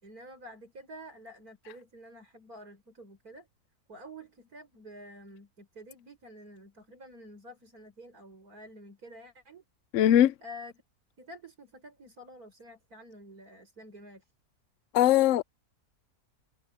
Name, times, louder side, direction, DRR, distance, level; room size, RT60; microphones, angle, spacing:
voice 1, 0.0-3.5 3.9-9.6 10.4-10.7 11.2-14.3, equal, 65° right, 6.3 m, -49 dB
voice 2, 9.9-10.3 14.9-15.4, left 12 dB, 65° left, 0.8 m, -20 dB
omnidirectional pair, 1.7 m